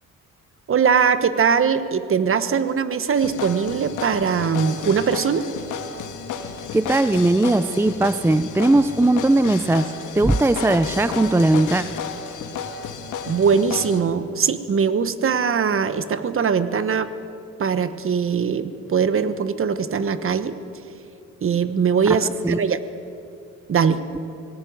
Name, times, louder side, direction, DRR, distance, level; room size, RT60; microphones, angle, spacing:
voice 1, 0.7-5.5 13.2-17.1 17.6-20.5 21.4-22.8 23.7-24.0, right 6 dB, 45° right, 12 dB, 1.2 m, -21 dB
sound 1, 3.2-14.0, left 6 dB, 85° left, 1.8 m, -32 dB
voice 2, 6.7-11.8 22.4-22.6, right 2 dB, 10° right, 13 dB, 0.6 m, -19 dB
18.5 x 17.5 x 9.5 m, 2.6 s
cardioid pair, 90°, 30 cm